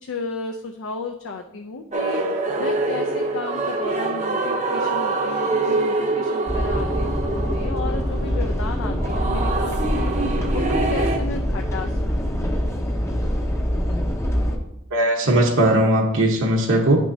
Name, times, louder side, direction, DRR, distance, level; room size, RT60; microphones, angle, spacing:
voice 1, 0.0-2.2 2.6-10.1 10.5-11.9, left 3 dB, 60° left, 4 dB, 0.5 m, -33 dB
sound 1, 1.9-11.2, right 3 dB, 35° right, 0.7 m, -25 dB
sound 2, 6.5-14.6, equal, 15° left, 0.7 m, -24 dB
voice 2, 14.9-17.0, right 1 dB, 65° right, 0 dB, 1.0 m, -18 dB
8.8 x 6.1 x 2.7 m, 0.80 s
head